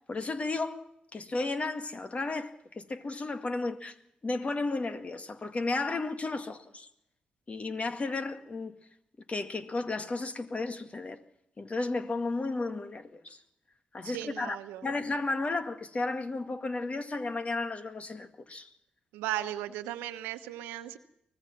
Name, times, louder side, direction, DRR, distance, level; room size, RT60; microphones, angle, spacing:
voice 1, 0.1-4.0 4.2-6.9 7.5-8.8 9.3-11.2 11.6-13.4 13.9-14.6 14.8-18.7, left 3 dB, 40° left, 2.0 m, -33 dB
voice 2, 14.0-14.9 19.1-21.0, right 13 dB, 90° right, 1.1 m, -36 dB
24.5 x 18.5 x 6.0 m
hypercardioid pair, 40°, 3 cm